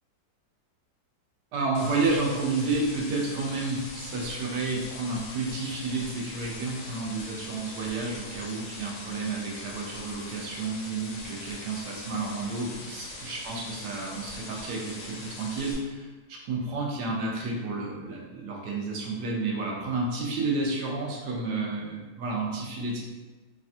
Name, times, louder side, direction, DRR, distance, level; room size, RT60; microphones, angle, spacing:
voice 1, 1.5-23.0, right 3 dB, 75° right, -3 dB, 1.1 m, -31 dB
sound 1, 1.7-15.7, left 2 dB, 80° left, 1.3 m, -42 dB
3.3 x 2.2 x 2.6 m, 1.2 s
omnidirectional pair, 1.9 m